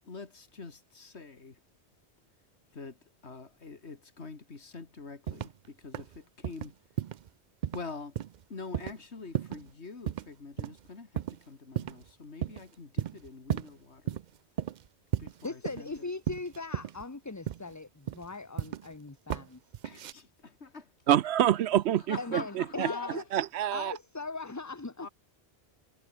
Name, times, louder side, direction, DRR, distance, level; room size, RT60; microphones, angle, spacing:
voice 1, 0.0-1.6 2.7-6.9 7.7-8.2 8.5-14.2 15.2-16.1 19.8-20.9 22.0-23.2 25.0-25.1, left 4 dB, 90° left, 2.6 m, -45 dB
sound 1, 5.3-5.7 5.9-6.2 6.4-6.7 7.0-7.3 7.6-7.8 8.2-8.4 8.7-9.0 9.3-9.7 10.1-10.3 10.6-10.8 11.2-11.4 11.8-12.1 12.4-12.6 13.0-13.7 14.1-14.2 14.6-14.9 15.1-16.0 16.3-17.0 17.5-17.7 18.1-18.9 19.3-19.5 19.7-20.1, right 10 dB, 55° right, 0.5 m, -34 dB
voice 2, 15.4-19.6 22.2-23.2 23.7-25.1, left 3 dB, 15° left, 0.9 m, -39 dB
voice 3, 21.1-22.2 22.8-22.9 23.3-23.9, right 11 dB, 80° right, 0.9 m, -25 dB
omnidirectional pair, 1.1 m